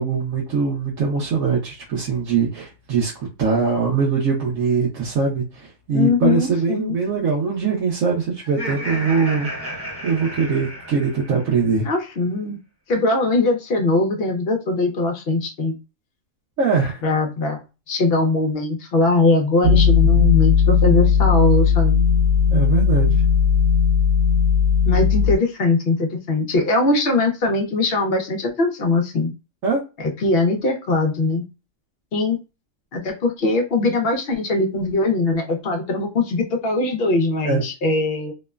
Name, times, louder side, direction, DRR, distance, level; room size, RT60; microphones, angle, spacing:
voice 1, 0.0-11.9 16.6-17.0 19.6-20.2 22.5-23.2 29.6-29.8 37.4-37.6, right 5 dB, 90° right, 1.1 m, -22 dB
voice 2, 5.9-7.0 11.8-12.6 12.9-15.7 17.0-22.0 24.8-29.3 30.0-31.4 32.1-32.4 32.9-38.3, left 2 dB, 55° left, 0.8 m, -21 dB
Laughter, 8.4-11.6, equal, 10° right, 0.8 m, -32 dB
sound 1, 19.6-25.4, left 6 dB, 75° right, 1.2 m, -16 dB
2.9 x 2.1 x 2.2 m
omnidirectional pair, 1.4 m